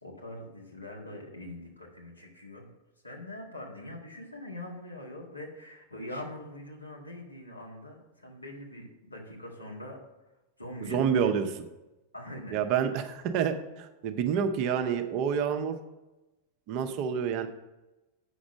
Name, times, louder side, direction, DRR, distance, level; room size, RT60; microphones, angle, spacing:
voice 1, 0.0-2.7 3.0-10.0 10.6-11.4 12.1-12.6, left 1 dB, 85° left, -2 dB, 1.8 m, -43 dB
voice 2, 10.9-11.6 12.5-15.8 16.7-17.5, right 7 dB, 45° right, 7 dB, 0.9 m, -28 dB
8.1 x 6.2 x 6.3 m, 1.0 s
figure-of-eight pair, 90°, 0 cm